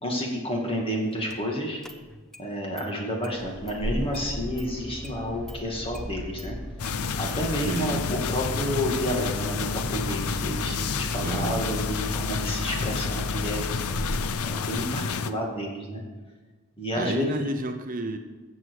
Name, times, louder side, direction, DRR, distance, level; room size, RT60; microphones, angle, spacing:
voice 1, 0.0-1.8 2.4-6.6 7.2-13.6 14.4-16.0 16.8-17.4, equal, 25° left, 0 dB, 2.1 m, -30 dB
Engine starting, 1.3-1.4 1.8-2.5 2.8-2.9 3.2-15.1, equal, ahead, 0.5 m, -36 dB
sound 1, 6.8-15.3, left 5 dB, 85° left, 0.6 m, -30 dB
voice 2, 7.6-8.0 11.2-11.6 17.0-18.2, right 2 dB, 40° right, 6 dB, 0.7 m, -31 dB
14.5 x 7.5 x 4.8 m, 1.3 s
head